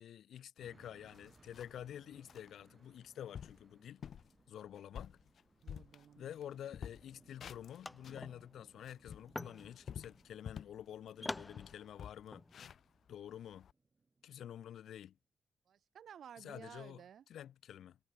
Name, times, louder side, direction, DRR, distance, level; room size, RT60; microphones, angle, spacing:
voice 1, 0.0-4.0 4.5-5.2 6.2-12.4 13.1-13.7 14.2-15.1 16.4-17.0 17.3-18.0, left 10 dB, 85° left, 2.5 m, -49 dB
sound 1, 0.6-0.7 1.1-1.9 2.3-2.5 3.0-3.1 3.3-3.6 4.0-4.3 4.7-6.4 6.7-8.3 8.7-10.8 11.2-11.3 11.5-13.7, left 8 dB, 55° left, 0.7 m, -50 dB
sound 2, 0.6-14.8, right 4 dB, 25° right, 3.5 m, -69 dB
voice 2, 5.6-6.3 15.7-17.2, right 8 dB, 60° right, 3.3 m, -54 dB
sound 3, 7.4-7.5 7.7-12.5, left 2 dB, 10° left, 2.1 m, -47 dB
wide cardioid pair, 175°, 0 cm